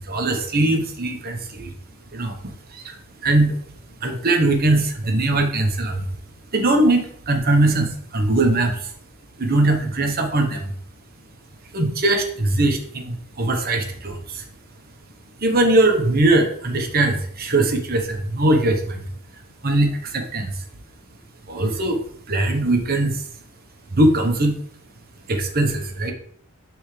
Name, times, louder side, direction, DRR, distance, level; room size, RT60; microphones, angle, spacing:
voice 1, 0.0-1.7 2.1-3.6 4.0-6.2 6.5-8.9 9.4-10.7 11.7-14.5 15.4-19.1 19.3-20.7 21.5-23.3 23.9-24.6 25.3-26.1, right 2 dB, 45° right, 4 dB, 1.0 m, -21 dB
10.0 x 3.5 x 3.3 m, 0.64 s
head